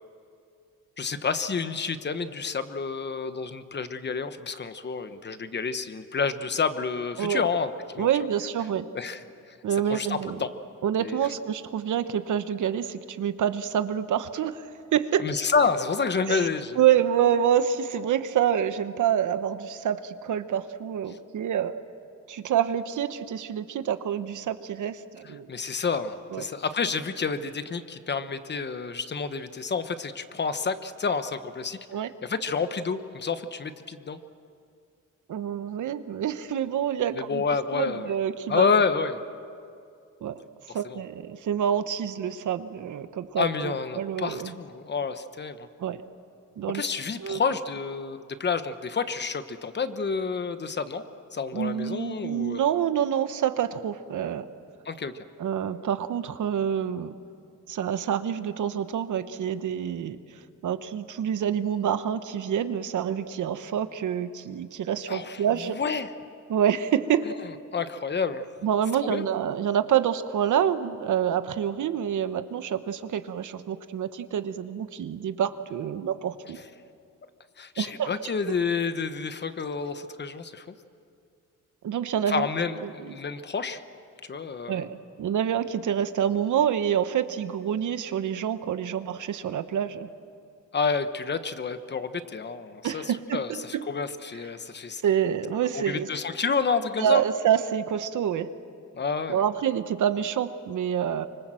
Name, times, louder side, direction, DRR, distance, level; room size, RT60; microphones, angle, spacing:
voice 1, 1.0-7.7 7.9-8.1 8.9-9.2 9.5-9.6 9.9-10.5 11.0-11.2 15.2-16.8 21.1-21.2 25.5-31.8 32.2-34.2 37.1-38.1 38.5-39.2 40.7-41.0 43.4-45.7 46.7-51.0 51.3-52.7 54.8-55.1 65.1-66.1 67.2-67.3 67.7-68.4 69.0-69.2 77.6-80.6 82.3-83.8 84.3-84.9 90.7-95.0 95.7-97.2 98.9-99.4, left 5 dB, 35° left, 10 dB, 1.0 m, -29 dB
voice 2, 8.0-8.9 9.6-10.5 10.8-14.7 14.9-15.3 16.3-16.5 16.8-21.7 22.3-25.5 26.3-26.5 31.9-32.1 35.3-37.4 37.7-38.7 40.2-40.4 40.7-44.5 45.8-46.0 46.6-46.9 47.2-47.4 51.5-54.5 55.4-57.2 57.7-60.2 60.6-65.8 66.5-67.3 68.6-76.6 77.8-78.1 78.5-78.6 81.8-82.5 82.8-83.1 84.7-90.1 90.9-91.0 92.8-93.8 95.0-96.1 97.0-98.5 99.3-101.3, right 9 dB, 70° right, 11 dB, 1.1 m, -27 dB
25.5 x 25.0 x 7.6 m, 2.4 s
wide cardioid pair, 145°, 31 cm